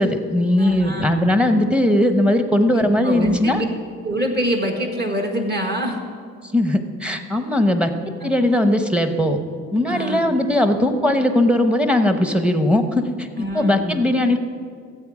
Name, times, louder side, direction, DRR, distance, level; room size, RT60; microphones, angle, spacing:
voice 1, 0.0-3.6 6.5-7.9 8.2-9.4 9.7-13.1 13.4-14.4, left 1 dB, 5° right, 7 dB, 0.9 m, -19 dB
voice 2, 0.6-1.2 2.7-3.6 4.0-6.0 8.2-8.3 9.9-10.3 13.4-14.0, right 1 dB, 35° right, 2 dB, 1.6 m, -25 dB
14.0 x 8.0 x 4.9 m, 2.1 s
cardioid pair, 90°, 30 cm